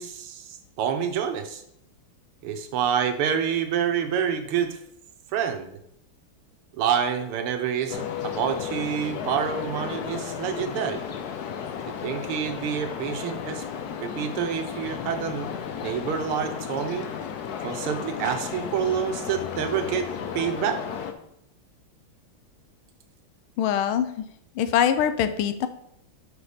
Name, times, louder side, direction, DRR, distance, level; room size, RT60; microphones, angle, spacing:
voice 1, 0.0-1.6 2.4-4.8 5.3-5.7 6.8-11.0 12.0-13.6 14.0-15.5 15.8-17.1 17.6-20.1 20.3-20.8, right 8 dB, 90° right, 7 dB, 1.8 m, -27 dB
sound 1, 7.9-21.1, left 7 dB, 65° left, 1.0 m, -34 dB
voice 2, 23.6-24.1 24.6-25.7, left 9 dB, 80° left, 10 dB, 1.5 m, -23 dB
6.7 x 4.9 x 5.0 m, 0.72 s
omnidirectional pair, 2.4 m